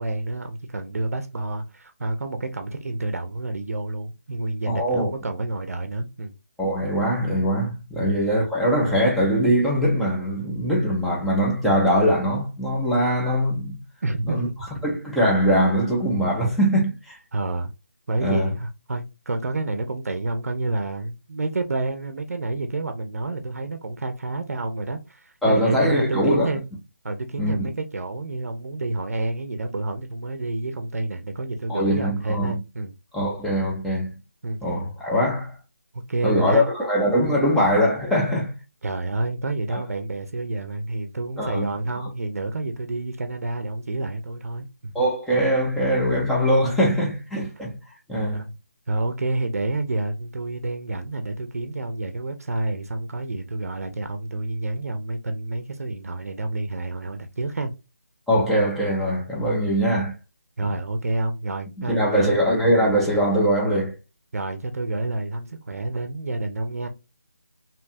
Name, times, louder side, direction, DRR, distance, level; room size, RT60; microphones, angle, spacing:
voice 1, 0.0-6.3 8.0-8.1 14.0-14.5 17.3-17.7 18.1-26.7 27.0-32.9 34.4-34.6 36.1-36.7 38.8-44.9 48.3-48.6 48.9-57.7 60.6-62.4 64.3-66.9, right 2 dB, 70° right, 0.5 m, -29 dB
voice 2, 4.7-5.1 6.6-13.8 14.3-14.5 14.8-17.2 18.2-18.5 25.4-26.5 27.4-27.7 31.7-32.5 33.1-34.1 34.6-35.5 36.2-38.5 39.7-39.8 41.4-41.7 42.0-42.1 44.9-47.8 48.1-48.5 58.3-60.2 60.6-60.7 61.8-64.0, equal, ahead, 0.3 m, -22 dB
2.8 x 2.2 x 2.5 m
figure-of-eight pair, 160°, 8 cm